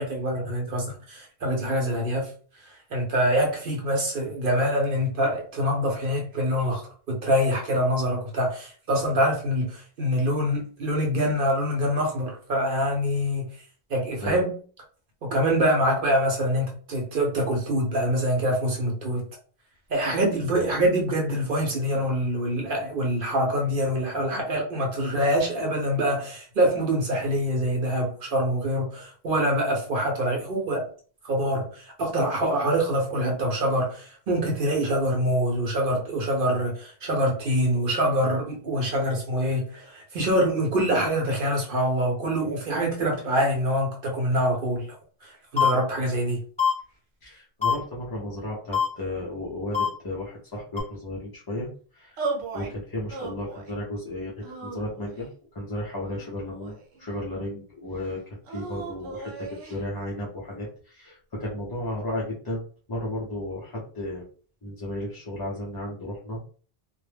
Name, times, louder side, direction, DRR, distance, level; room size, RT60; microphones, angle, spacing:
voice 1, 0.0-2.3 2.6-6.8 7.1-13.4 13.9-14.5 15.2-19.2 19.9-30.8 31.2-45.0 45.2-46.4, equal, 60° right, 0 dB, 0.8 m, -25 dB
sound 1, 45.6-45.7 46.6-46.7 47.6-47.7 48.7-48.9 49.7-49.9 50.8-50.9, left 7 dB, 5° left, 1.0 m, -21 dB
voice 2, 47.2-51.7 51.9-52.2 52.5-55.3 55.5-62.6 62.9-64.2 64.6-66.4, left 1 dB, 35° left, -5 dB, 0.4 m, -34 dB
sound 2, 52.2-52.7 53.1-53.8 54.4-55.3 56.1-57.1 58.4-59.8, right 4 dB, 85° right, 0.9 m, -36 dB
2.2 x 2.0 x 3.2 m, 0.43 s
omnidirectional pair, 1.1 m